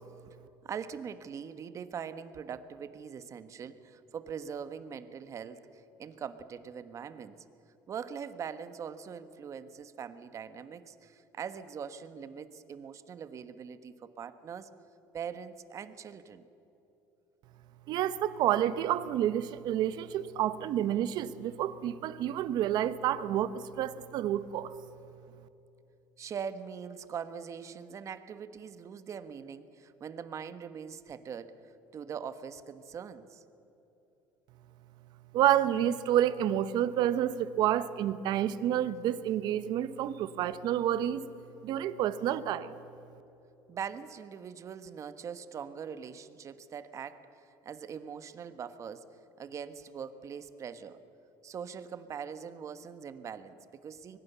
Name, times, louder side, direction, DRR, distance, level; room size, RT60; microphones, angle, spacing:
voice 1, 0.6-7.4 7.9-14.7 15.1-16.4 26.2-31.5 31.9-33.4 43.7-49.1 49.4-51.0 51.4-54.2, right 7 dB, 40° right, 11 dB, 1.4 m, -42 dB
voice 2, 17.9-24.7 35.3-41.2 41.6-42.7, right 11 dB, 65° right, 13 dB, 1.1 m, -29 dB
25.0 x 22.0 x 7.0 m, 3.0 s
cardioid pair, 115°, 8 cm